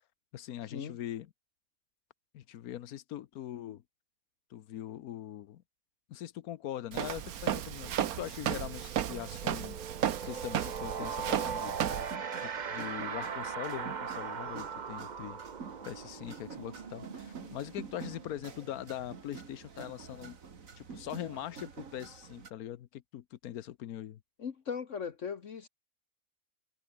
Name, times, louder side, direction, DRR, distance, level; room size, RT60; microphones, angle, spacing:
voice 1, 0.3-1.3 2.3-3.8 4.5-5.6 6.1-9.8 10.2-12.2 12.4-15.4 15.8-20.4 20.8-24.2, left 12 dB, 85° left, 1.3 m, -42 dB
Walk footsteps, 6.9-12.1, right 10 dB, 90° right, 1.4 m, -34 dB
sound 1, 7.9-8.1 8.4-18.9, right 6 dB, 35° right, 0.9 m, -40 dB
sound 2, 10.5-22.5, right 5 dB, 65° right, 2.3 m, -49 dB
voice 2, 24.4-25.7, left 6 dB, 60° left, 1.5 m, -38 dB
omnidirectional pair, 1.5 m